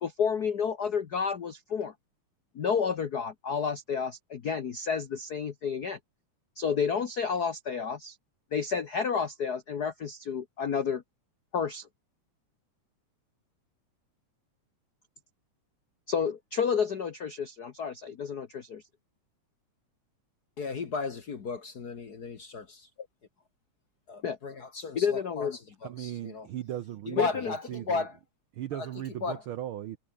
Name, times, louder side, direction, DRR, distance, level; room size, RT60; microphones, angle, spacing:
voice 1, 0.0-1.9 2.5-6.0 6.6-8.2 8.5-11.0 11.5-11.9 16.1-18.8 24.2-24.4 24.9-25.6 27.1-27.5, left 6 dB, 60° left, 1.0 m, -30 dB
voice 2, 20.6-22.9 24.1-25.5 25.8-26.5 27.0-28.2 28.7-29.5, left 4 dB, 45° left, 1.4 m, -35 dB
voice 3, 26.0-27.2 27.7-27.8 28.6-30.0, right 12 dB, 75° right, 1.2 m, -37 dB
omnidirectional pair, 3.4 m